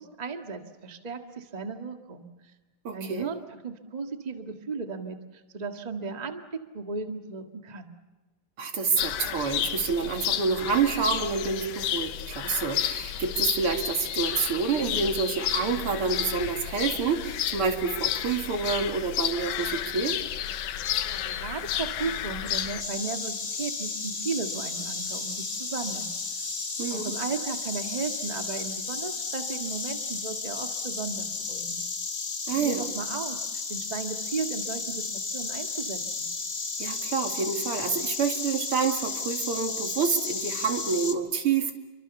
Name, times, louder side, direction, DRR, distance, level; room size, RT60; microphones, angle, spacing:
voice 1, 0.0-2.3 2.9-7.9 21.1-26.1 26.9-31.8 32.5-33.4 33.7-36.3, right 4 dB, 75° right, 5 dB, 0.4 m, -35 dB
voice 2, 2.8-3.3 8.6-20.2 26.8-27.1 32.5-32.8 36.8-41.8, right 5 dB, 40° right, 5 dB, 2.7 m, -28 dB
sound 1, 9.0-22.8, left 10 dB, 80° left, 2.9 m, -31 dB
Insect, 22.8-41.1, left 4 dB, 30° left, 1.3 m, -33 dB
29.5 x 24.0 x 7.1 m, 1.2 s
omnidirectional pair, 4.2 m